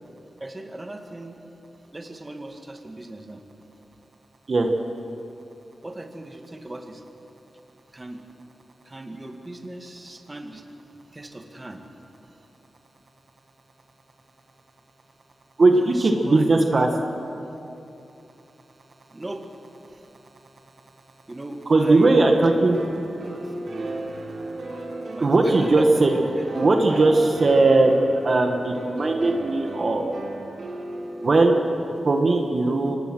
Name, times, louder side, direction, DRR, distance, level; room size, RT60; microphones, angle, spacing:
voice 1, 0.4-1.4 1.9-3.4 5.8-7.0 7.9-8.2 8.8-10.6 11.1-11.8 15.8-16.9 19.1-19.5 21.3-22.2 23.3-23.5 25.1-25.9 26.1-26.2 26.9-27.0, right 1 dB, 25° right, 4 dB, 2.1 m, -38 dB
voice 2, 15.6-16.9 21.7-22.8 25.2-26.2 26.5-27.9 28.2-30.1 31.2-31.5 32.0-33.0, right 2 dB, 50° right, 3 dB, 1.7 m, -18 dB
sound 1, 22.0-31.9, right 2 dB, 70° right, 3.3 m, -35 dB
24.5 x 19.5 x 6.3 m, 2.8 s
cardioid pair, 65°, 0 cm